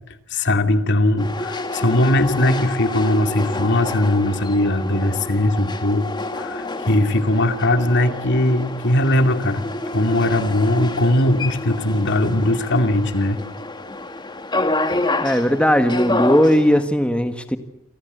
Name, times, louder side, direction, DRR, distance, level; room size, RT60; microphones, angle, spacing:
voice 1, 0.3-6.1 6.3-9.6 9.9-13.4, left 1 dB, 60° left, 7 dB, 2.5 m, -19 dB
sound 1, 1.2-16.8, left 2 dB, 20° left, 2.0 m, -28 dB
voice 2, 15.2-17.6, equal, 5° left, 8 dB, 1.5 m, -17 dB
29.0 x 25.0 x 8.1 m, 0.78 s
head